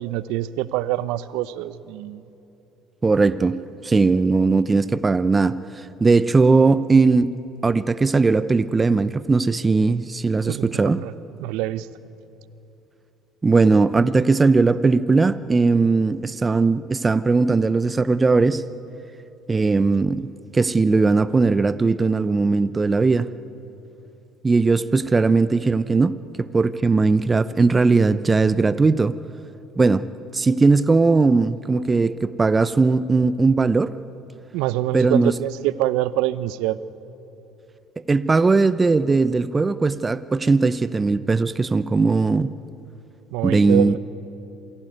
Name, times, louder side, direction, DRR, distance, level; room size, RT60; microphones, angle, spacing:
voice 1, 0.0-2.2 10.5-11.1 11.4-11.9 34.5-36.8 43.3-44.0, right 14 dB, 75° right, 16 dB, 0.8 m, -25 dB
voice 2, 3.0-5.6 6.0-7.3 7.6-11.0 13.4-18.6 19.5-23.3 24.4-26.1 26.4-29.2 29.8-30.0 30.3-33.9 34.9-35.3 38.1-42.5 43.4-43.9, right 3 dB, 25° right, 15 dB, 0.8 m, -19 dB
27.5 x 19.0 x 9.5 m, 2.9 s
hypercardioid pair, 65°, 0 cm